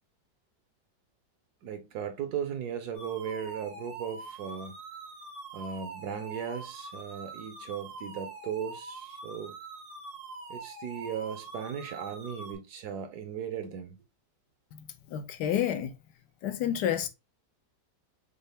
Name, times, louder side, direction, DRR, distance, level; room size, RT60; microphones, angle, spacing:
voice 1, 1.6-4.7 5.5-9.5 10.5-14.0, right 8 dB, 70° right, 1.1 m, -37 dB
sound 1, 2.9-12.6, right 3 dB, 90° right, 1.9 m, -44 dB
voice 2, 14.7-15.9 16.4-17.1, left 10 dB, 75° left, 1.2 m, -30 dB
5.3 x 2.0 x 3.3 m
omnidirectional pair, 1.9 m